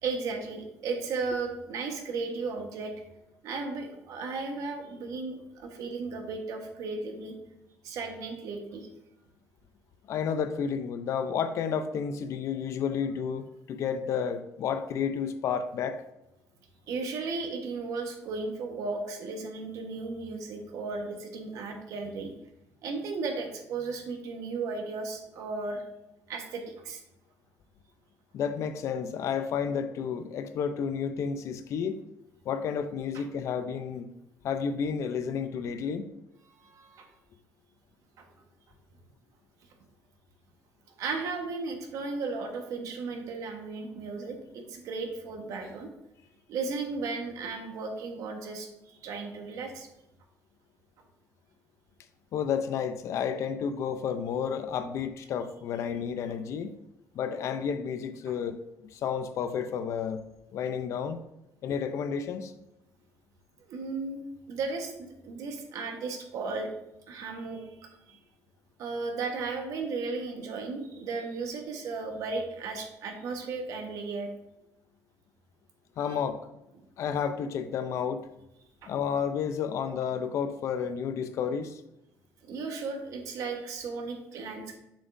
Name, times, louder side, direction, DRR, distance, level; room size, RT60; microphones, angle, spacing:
voice 1, 0.0-2.9 3.4-7.3 7.8-8.9 16.9-22.3 22.8-25.8 26.3-27.0 33.1-33.2 36.6-37.1 38.2-38.3 41.0-45.9 46.5-49.9 63.7-64.2 64.5-66.7 67.1-68.2 68.8-74.3 76.0-76.2 76.8-76.9 78.8-78.9 82.4-84.8, right 4 dB, 60° right, 1.2 m, -35 dB
voice 2, 10.1-16.0 28.3-32.0 32.5-34.1 34.4-36.1 52.3-56.8 57.1-60.2 60.5-61.2 61.6-62.5 76.0-76.4 77.0-78.3 78.9-81.8, left 7 dB, 50° left, 0.5 m, -31 dB
7.2 x 7.1 x 2.6 m
cardioid pair, 165°, 6 cm